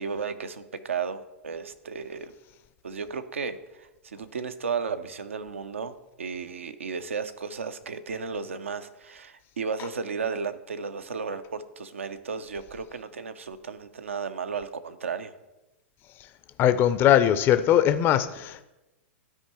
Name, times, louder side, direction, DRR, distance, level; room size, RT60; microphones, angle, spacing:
voice 1, 0.0-2.3 2.8-15.3, right 5 dB, 80° right, 10 dB, 0.5 m, -34 dB
voice 2, 16.6-18.6, left 11 dB, 35° left, 11 dB, 0.4 m, -20 dB
13.0 x 4.5 x 3.0 m, 0.99 s
hypercardioid pair, 100°, 7 cm